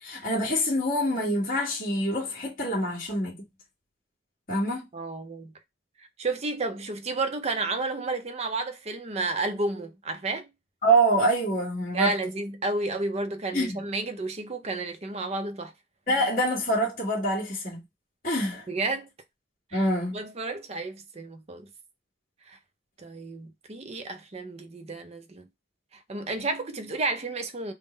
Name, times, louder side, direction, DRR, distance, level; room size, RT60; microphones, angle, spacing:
voice 1, 0.0-3.4 4.5-4.9 10.8-12.2 13.5-13.8 16.1-17.8 18.2-18.7 19.7-20.2, right 1 dB, 45° left, 1.5 m, -25 dB
voice 2, 4.9-5.5 6.0-10.5 11.9-15.7 18.7-19.1 19.7-21.7 22.5-22.6 23.0-25.5 25.9-27.7, right 3 dB, 35° right, 0.5 m, -31 dB
3.6 x 2.1 x 3.9 m
head